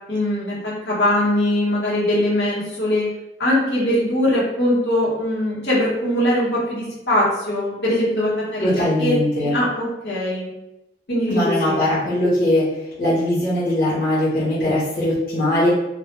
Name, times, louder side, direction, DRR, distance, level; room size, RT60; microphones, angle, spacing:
voice 1, 0.1-3.1 3.4-10.5 11.1-11.9, left 1 dB, 75° left, -7 dB, 1.0 m, -21 dB
voice 2, 8.6-9.5 11.3-12.7 13.0-15.7, left 1 dB, 50° left, -10 dB, 0.7 m, -20 dB
2.2 x 2.1 x 3.0 m, 0.92 s
head